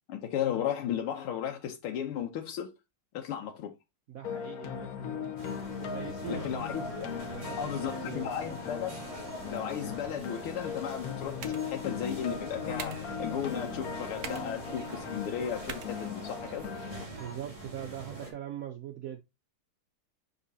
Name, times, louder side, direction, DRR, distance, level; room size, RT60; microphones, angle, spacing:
voice 1, 0.1-2.7 3.1-3.7 6.3-6.9 7.6-9.0 9.5-16.7, left 9 dB, 90° left, 1.8 m, -35 dB
voice 2, 4.1-5.3 5.8-6.8 7.2-8.3 17.2-19.2, right 10 dB, 85° right, 0.7 m, -42 dB
sound 1, 4.2-17.0, left 6 dB, 55° left, 1.1 m, -38 dB
sound 2, 5.4-18.3, right 2 dB, 15° right, 1.7 m, -44 dB
sound 3, 10.9-16.9, right 7 dB, 60° right, 1.1 m, -48 dB
6.1 x 5.5 x 2.8 m
omnidirectional pair, 2.3 m